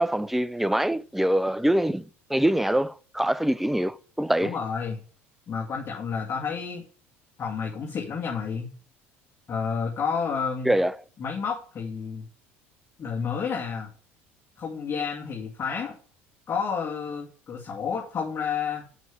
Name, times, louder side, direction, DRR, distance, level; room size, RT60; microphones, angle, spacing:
voice 1, 0.0-2.0 2.3-4.5 10.7-10.9, right 1 dB, 5° right, 0.5 m, -24 dB
voice 2, 4.4-5.0 5.5-6.8 7.4-8.7 9.5-10.7 11.2-12.3 13.0-13.9 14.6-15.9 16.5-18.8, left 6 dB, 40° left, 2.4 m, -30 dB
6.7 x 6.1 x 7.0 m
supercardioid pair, 85°, 6 cm